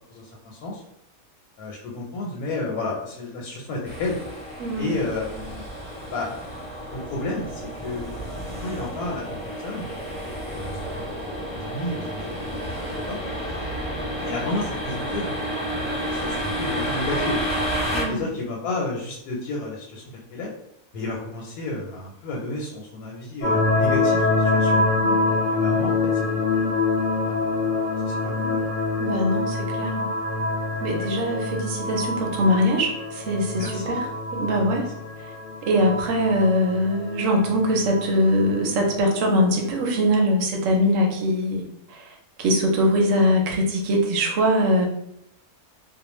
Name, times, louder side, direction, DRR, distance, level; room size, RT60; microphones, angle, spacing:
voice 1, 0.1-0.8 1.6-4.2 4.8-5.6 6.1-6.3 6.9-8.1 8.6-9.9 10.6-13.2 14.1-17.4 18.1-20.0 20.3-20.5 20.9-24.9 25.6-26.5 27.2-27.4 28.0-28.6 33.6-34.0 34.8-34.9, left 2 dB, 90° left, -2 dB, 1.1 m, -32 dB
sound 1, 3.8-18.0, equal, 5° left, 0.9 m, -31 dB
voice 2, 4.6-5.0 17.9-18.2 29.0-30.1 30.8-34.1 34.3-34.9 35.6-42.1 42.4-44.9, equal, 70° right, 1 dB, 0.9 m, -22 dB
sound 2, 23.4-40.0, left 3 dB, 60° left, 0.9 m, -25 dB
2.4 x 2.1 x 3.0 m, 0.77 s
omnidirectional pair, 1.5 m